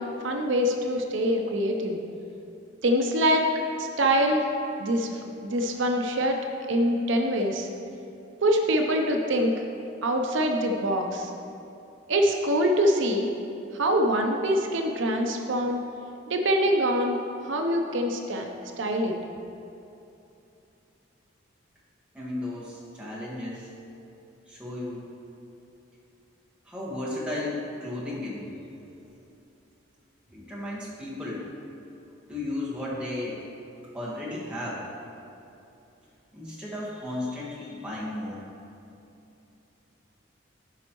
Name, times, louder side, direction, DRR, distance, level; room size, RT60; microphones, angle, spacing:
voice 1, 0.0-2.0 2.8-3.5 3.8-4.5 4.8-5.1 5.4-6.4 6.7-7.7 8.4-9.5 10.0-11.3 12.1-13.3 13.7-15.8 16.3-17.2 17.4-18.5 18.8-19.1, equal, 70° right, 3 dB, 0.6 m, -24 dB
voice 2, 22.1-23.7 24.5-25.1 26.6-28.6 30.3-31.5 32.3-33.4 33.9-34.8 36.3-38.4, left 1 dB, 5° right, -8 dB, 1.5 m, -34 dB
12.5 x 5.2 x 3.0 m, 2.8 s
head